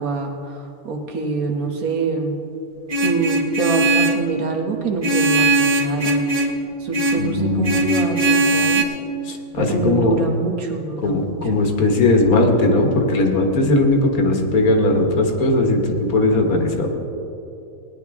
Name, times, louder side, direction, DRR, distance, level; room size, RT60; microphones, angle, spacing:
voice 1, 0.0-2.4 3.0-6.3 6.8-8.9 9.6-11.5, right 3 dB, 80° right, 2 dB, 1.7 m, -25 dB
Vehicle horn car horn honking, 2.9-4.3 5.0-6.6 6.9-7.3 7.6-8.8, right 2 dB, 30° right, 0.8 m, -19 dB
voice 2, 7.2-7.8 9.3-10.2 11.0-16.9, left 2 dB, 80° left, 3 dB, 1.7 m, -18 dB
17.5 x 10.0 x 3.6 m, 2.8 s
omnidirectional pair, 1.5 m